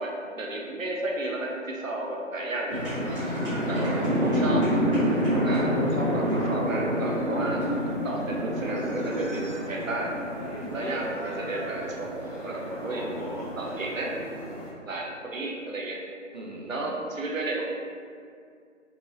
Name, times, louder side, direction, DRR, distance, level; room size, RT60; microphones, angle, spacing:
voice 1, 0.0-2.8 3.7-3.8 4.2-4.6 5.4-7.6 8.0-10.1 10.7-13.0 13.6-14.1 14.8-16.0 16.7-17.7, right 2 dB, 85° right, -1 dB, 1.1 m, -32 dB
sound 1, 2.7-14.7, equal, 5° right, 1.5 m, -28 dB
voice 2, 3.4-4.7 10.5-10.8 12.8-13.5 16.3-16.8, right 1 dB, 35° right, -1 dB, 0.5 m, -39 dB
6.0 x 3.0 x 2.7 m, 2.3 s
figure-of-eight pair, 155°, 39 cm